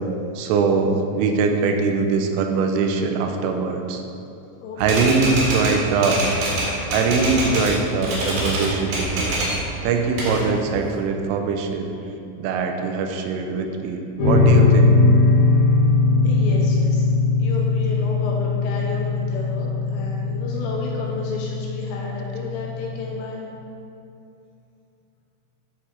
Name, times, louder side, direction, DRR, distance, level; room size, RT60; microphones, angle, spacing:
voice 1, 0.4-4.0 4.8-6.2 6.9-9.4 9.8-11.9 12.4-14.9, right 4 dB, 85° right, 4 dB, 3.2 m, -22 dB
voice 2, 4.6-5.2 16.2-17.1 17.4-23.5, left 3 dB, 80° left, -2 dB, 2.9 m, -32 dB
Typewriter, 4.8-7.8 8.0-9.6 9.9-11.0, right 1 dB, 60° right, 3.4 m, -25 dB
sound 1, 14.2-23.2, left 3 dB, 60° left, 3.7 m, -20 dB
12.5 x 4.8 x 4.3 m, 2.7 s
omnidirectional pair, 5.7 m